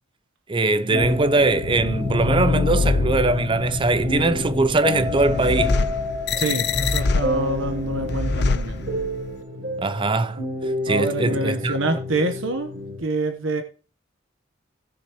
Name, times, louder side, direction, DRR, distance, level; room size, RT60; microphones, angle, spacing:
voice 1, 0.5-5.8 9.8-10.4 10.9-11.8, right 3 dB, 25° right, 0.6 m, -21 dB
sound 1, 0.7-13.0, left 1 dB, 55° right, 4.8 m, -30 dB
sound 2, 1.0-9.3, left 3 dB, 55° left, 0.7 m, -25 dB
voice 2, 6.4-8.8 10.9-12.7 13.0-13.6, right 2 dB, 80° right, 1.1 m, -26 dB
17.0 x 6.6 x 3.1 m
head